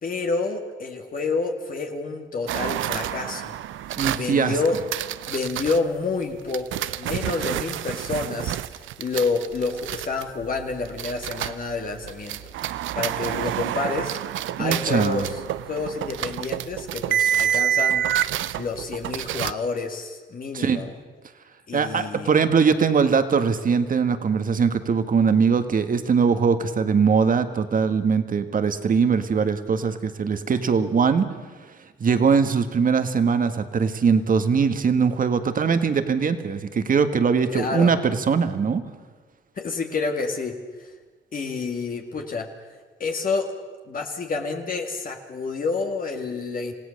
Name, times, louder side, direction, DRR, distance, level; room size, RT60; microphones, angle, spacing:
voice 1, 0.0-3.5 4.1-4.8 5.3-12.4 12.9-14.2 14.6-15.4 15.7-18.1 18.5-21.0 21.7-22.3 37.5-37.9 39.6-40.5 40.8-40.9 41.3-42.5 43.0-43.5 43.9-46.7, left 4 dB, 45° left, 3 dB, 2.1 m, -28 dB
sound 1, 2.5-5.8 6.5-11.7 12.0-19.5, right 11 dB, 75° right, 0.7 m, -28 dB
voice 2, 4.0-4.5 14.6-15.3 20.5-20.8 21.7-31.3 32.0-38.8, right 5 dB, 45° right, 9 dB, 1.7 m, -21 dB
27.5 x 16.5 x 6.6 m, 1.4 s
cardioid pair, 90°, 20 cm